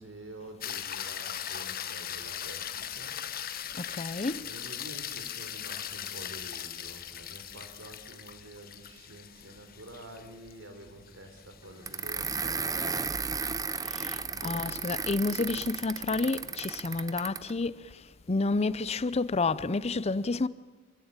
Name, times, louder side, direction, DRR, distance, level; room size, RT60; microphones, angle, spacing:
voice 1, 0.0-3.2 4.4-14.8, right 1 dB, 85° right, 3.7 m, -48 dB
sound 1, 0.6-13.0 17.5-17.6, left 10 dB, 50° left, 1.3 m, -39 dB
voice 2, 3.8-4.5 13.8-20.5, left 3 dB, 35° left, 0.6 m, -30 dB
sound 2, 11.9-17.5, right 5 dB, 20° right, 0.7 m, -34 dB
26.5 x 16.0 x 8.9 m
head